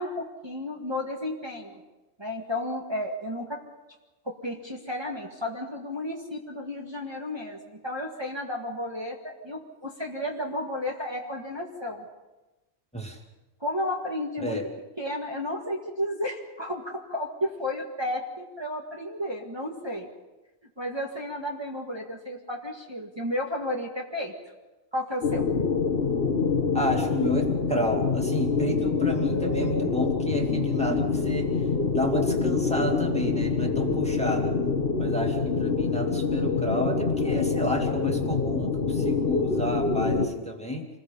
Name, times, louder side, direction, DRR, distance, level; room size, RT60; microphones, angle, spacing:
voice 1, 0.0-1.8 2.2-3.6 4.2-12.0 13.6-14.6 15.0-20.1 20.8-24.3 24.9-25.5, left 1 dB, 20° right, -2 dB, 2.0 m, -32 dB
sound 1, 25.2-40.3, left 4 dB, 45° left, 1.6 m, -26 dB
voice 2, 26.7-31.5 31.9-34.5 35.0-40.9, equal, 5° left, 2 dB, 2.4 m, -30 dB
28.0 x 20.5 x 5.6 m, 1.1 s
omnidirectional pair, 1.4 m